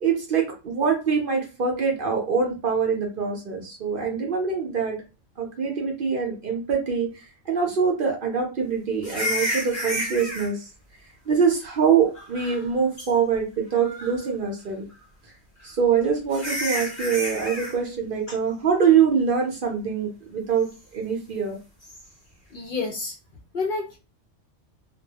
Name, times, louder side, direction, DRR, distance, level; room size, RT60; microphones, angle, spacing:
voice 1, 0.0-5.0 5.4-10.7 11.3-14.9 15.6-20.7 20.9-21.6, right 6 dB, 55° right, 1 dB, 0.7 m, -24 dB
sound 1, 9.0-10.5 12.1-12.7 13.0-13.1 13.7-14.3 15.6-15.7 16.3-17.8 21.8-22.0, left 1 dB, 35° left, 1.0 m, -30 dB
voice 2, 22.5-23.2 23.5-24.0, left 4 dB, 60° left, 0 dB, 0.6 m, -29 dB
2.2 x 2.0 x 2.7 m, 0.31 s
omnidirectional pair, 1.2 m